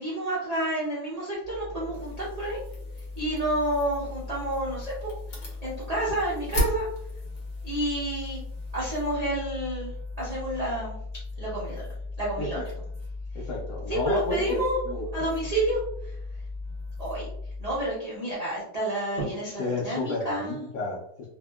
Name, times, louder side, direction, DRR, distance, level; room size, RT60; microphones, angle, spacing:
voice 1, 0.0-2.6 3.2-6.9 7.6-8.4 8.7-9.9 10.2-11.0 11.4-11.9 12.2-12.7 13.3-13.4 13.9-14.8 15.1-16.2 17.0-17.3 17.6-20.7, right 1 dB, 80° right, -8 dB, 0.3 m, -30 dB
sound 1, 1.4-18.0, left 3 dB, 30° right, 0.9 m, -38 dB
sound 2, 1.9-9.1, right 1 dB, 55° left, 1.2 m, -37 dB
voice 2, 13.3-15.1 19.6-21.3, left 2 dB, 75° left, -4 dB, 1.1 m, -31 dB
2.8 x 2.6 x 2.2 m, 0.74 s
omnidirectional pair, 1.9 m